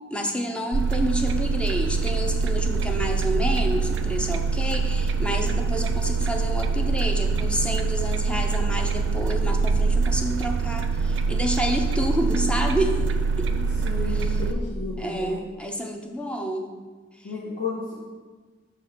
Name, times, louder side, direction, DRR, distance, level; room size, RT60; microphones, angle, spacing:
voice 1, 0.0-13.0 13.4-13.5 14.2-14.3 15.0-16.7, equal, 5° left, 3 dB, 0.6 m, -29 dB
sound 1, 0.7-14.5, right 4 dB, 65° right, 0.4 m, -24 dB
voice 2, 13.5-15.3 17.2-17.9, left 3 dB, 50° left, -6 dB, 1.2 m, -32 dB
6.4 x 3.6 x 5.8 m, 1.4 s
head